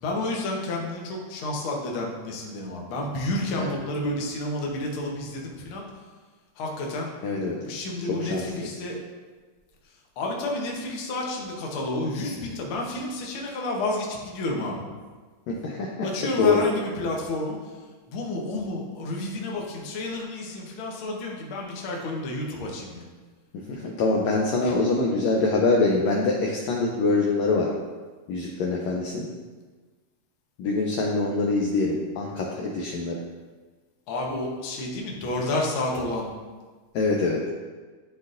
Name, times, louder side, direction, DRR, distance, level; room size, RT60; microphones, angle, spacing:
voice 1, 0.0-5.8 6.6-7.1 7.5-9.0 10.2-14.8 16.0-17.6 18.1-23.0 24.6-24.7 34.1-36.3, left 2 dB, 70° left, -1 dB, 1.2 m, -30 dB
voice 2, 7.2-7.6 8.2-8.7 15.5-15.9 16.4-16.6 23.7-27.7 28.3-29.3 30.6-33.2 36.9-37.4, left 3 dB, 85° left, -1 dB, 1.5 m, -24 dB
11.5 x 4.0 x 2.6 m, 1.4 s
omnidirectional pair, 3.8 m